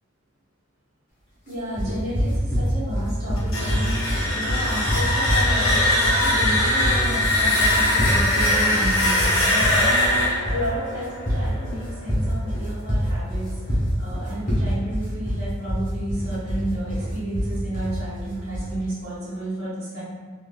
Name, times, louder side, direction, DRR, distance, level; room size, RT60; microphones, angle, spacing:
voice 1, 1.5-20.0, right 1 dB, 70° right, -13 dB, 1.2 m, -32 dB
sound 1, 1.8-18.7, equal, 40° left, 1.0 m, -25 dB
sound 2, 3.4-12.2, left 1 dB, 90° left, 1.1 m, -22 dB
3.4 x 3.3 x 2.3 m, 1.5 s
head